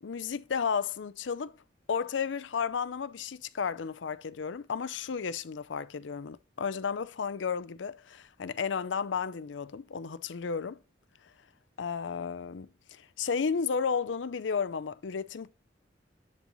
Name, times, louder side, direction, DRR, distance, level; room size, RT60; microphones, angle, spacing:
voice 1, 0.0-1.6 1.9-10.8 11.8-15.5, left 6 dB, 85° left, 0.5 m, -33 dB
10.5 x 4.1 x 3.0 m
head